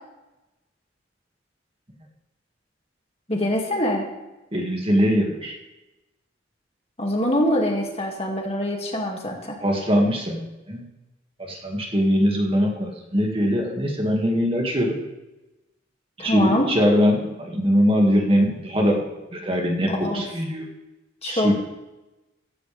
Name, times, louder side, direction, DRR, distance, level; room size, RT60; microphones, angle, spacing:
voice 1, 3.3-4.0 7.0-9.6 16.2-16.7 20.0-20.2 21.2-21.5, left 1 dB, 30° left, 0 dB, 2.3 m, -24 dB
voice 2, 4.5-5.6 9.6-10.8 11.4-15.0 16.2-20.7 21.2-21.5, equal, 30° right, 0 dB, 2.1 m, -22 dB
15.5 x 15.0 x 3.5 m, 1.0 s
head